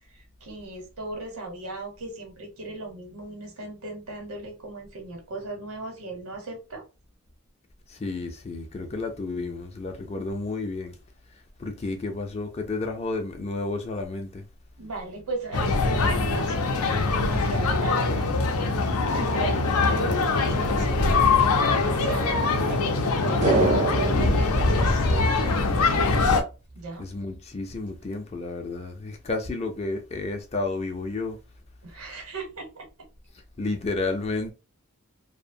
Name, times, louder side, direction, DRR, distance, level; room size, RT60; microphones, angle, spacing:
voice 1, 0.1-6.8 14.8-16.8 17.1-18.3 19.1-23.7 24.3-26.1 26.7-27.1 31.8-32.9, right 3 dB, 80° right, 0.9 m, -37 dB
voice 2, 7.9-11.0 11.3-14.5 27.0-31.4 33.6-34.5, left 3 dB, 30° left, 0.4 m, -31 dB
sound 1, 15.5-26.4, left 3 dB, 85° left, 0.5 m, -23 dB
sound 2, 23.4-25.9 26.2-26.3, right 3 dB, 35° right, 0.4 m, -26 dB
2.5 x 2.1 x 2.5 m
head